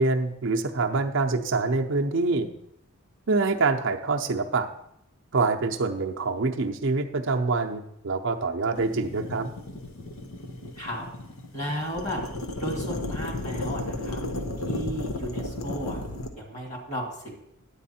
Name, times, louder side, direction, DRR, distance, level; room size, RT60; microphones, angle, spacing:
voice 1, 0.0-2.5 3.3-4.7 5.3-9.5, right 3 dB, 60° right, 3 dB, 0.6 m, -25 dB
sound 1, 8.7-16.3, left 2 dB, 75° left, 0.9 m, -34 dB
voice 2, 11.5-12.2 12.6-14.2 14.6-16.0 16.4-17.4, equal, 35° left, 1 dB, 2.2 m, -34 dB
10.0 x 8.3 x 4.3 m, 0.79 s
head